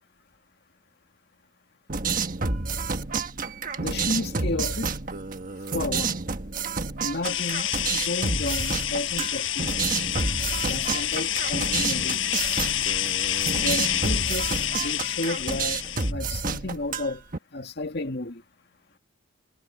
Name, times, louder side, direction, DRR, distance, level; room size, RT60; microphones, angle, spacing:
sound 1, 1.9-17.4, right 4 dB, 40° right, 1.4 m, -29 dB
voice 1, 3.8-4.9 5.7-6.2 7.0-9.7 10.7-12.4 13.5-15.8 16.1-17.2 17.5-18.4, left 2 dB, 50° left, 2.1 m, -32 dB
sound 2, 7.2-16.1, left 12 dB, 65° left, 5.3 m, -28 dB
head